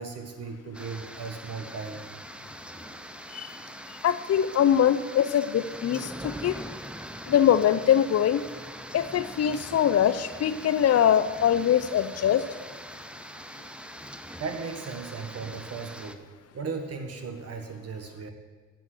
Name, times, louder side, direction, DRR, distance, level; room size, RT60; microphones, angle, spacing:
voice 1, 0.0-2.0 14.4-16.2 16.5-18.3, right 5 dB, 55° right, 6 dB, 1.6 m, -36 dB
sound 1, 0.7-16.2, equal, 5° right, 0.7 m, -42 dB
voice 2, 4.0-6.5 7.3-8.4 8.9-12.4, left 9 dB, 55° left, 13 dB, 0.6 m, -23 dB
8.1 x 7.7 x 7.7 m, 1.5 s
cardioid pair, 90°, 30 cm